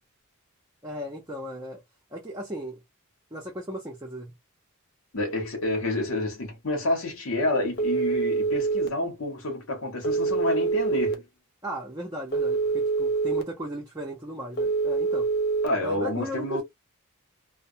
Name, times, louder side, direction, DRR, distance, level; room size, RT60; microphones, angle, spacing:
voice 1, 0.8-1.8 2.1-2.8 3.3-4.3 11.6-15.3 15.8-16.6, equal, 15° right, 0.6 m, -36 dB
voice 2, 5.1-11.2 15.6-16.6, left 2 dB, 70° left, 1.0 m, -29 dB
Telephone, 7.8-8.9 10.0-11.1 12.3-13.4 14.6-15.7, right 4 dB, 50° left, 0.5 m, -25 dB
2.3 x 2.1 x 2.6 m
head